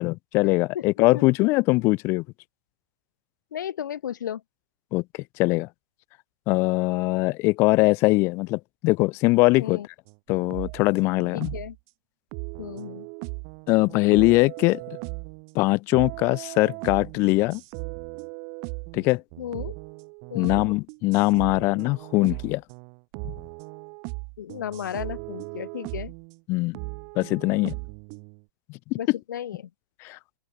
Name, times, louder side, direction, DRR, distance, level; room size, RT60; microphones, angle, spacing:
voice 1, 0.0-2.2 4.9-5.0 5.4-5.7 6.5-9.8 10.3-11.5 13.7-14.8 15.5-17.6 18.9-19.2 20.3-22.6 26.5-26.8 27.1-27.7 28.9-29.0 30.0-30.2, left 23 dB, 25° left, 4.6 m, -22 dB
voice 2, 0.7-1.2 3.5-4.4 9.6-9.9 11.3-11.8 12.6-13.1 19.4-19.7 20.3-20.6 24.4-26.1 29.0-29.6, left 10 dB, 65° left, 7.6 m, -34 dB
sound 1, 10.1-11.8 12.3-15.6 15.9-26.4 26.7-28.4, right 40 dB or more, 25° right, 5.5 m, -38 dB
open air
supercardioid pair, 180°, 11 cm